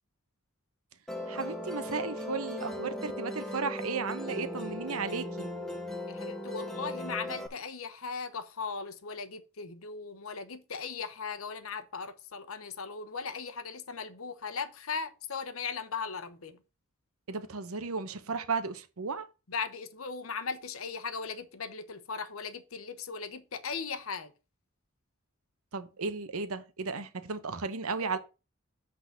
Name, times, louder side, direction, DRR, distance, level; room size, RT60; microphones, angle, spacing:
Musical instrument, 1.1-7.5, left 1 dB, ahead, 0.8 m, -37 dB
voice 1, 1.3-5.5 17.3-19.3 25.7-28.2, right 4 dB, 90° right, 0.9 m, -35 dB
voice 2, 6.1-16.6 19.5-24.3, left 5 dB, 80° left, 0.9 m, -38 dB
8.2 x 4.0 x 5.8 m
head